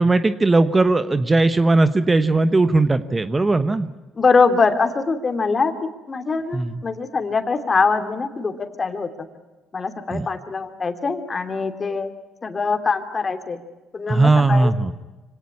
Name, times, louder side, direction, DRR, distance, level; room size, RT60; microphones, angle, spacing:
voice 1, 0.0-3.9 6.5-6.8 10.1-10.3 14.1-14.9, right 2 dB, 20° right, 11 dB, 1.2 m, -18 dB
voice 2, 4.2-8.5 8.8-9.3 9.7-12.1 12.4-13.6 13.9-14.7, left 4 dB, 35° left, 7 dB, 2.8 m, -22 dB
25.0 x 17.5 x 9.7 m, 1.2 s
supercardioid pair, 80°, 0 cm